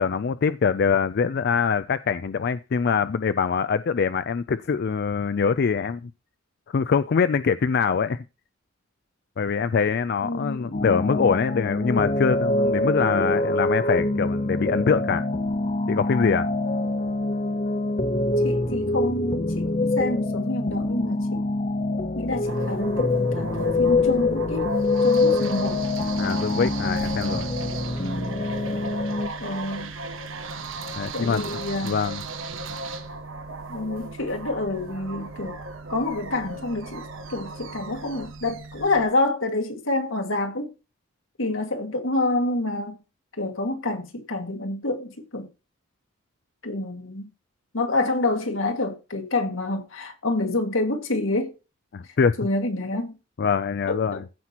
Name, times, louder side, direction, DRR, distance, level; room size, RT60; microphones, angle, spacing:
voice 1, 0.0-6.1 6.7-8.2 9.4-15.2 15.9-16.5 26.2-27.5 30.9-32.2 51.9-52.4 53.4-54.2, left 6 dB, 55° left, 0.4 m, -24 dB
voice 2, 10.2-10.8 18.4-21.4 22.1-24.7 25.0-25.8 29.4-29.9 31.1-31.9 33.7-35.6 35.9-40.7 41.4-43.0 43.4-45.5 46.6-47.3 47.7-51.5 52.4-53.1 53.9-54.2, left 2 dB, 85° left, 2.0 m, -27 dB
sound 1, 10.7-29.3, left 2 dB, 35° left, 0.8 m, -25 dB
sound 2, 22.4-39.1, right 3 dB, 90° right, 1.5 m, -36 dB
15.5 x 5.8 x 2.9 m
head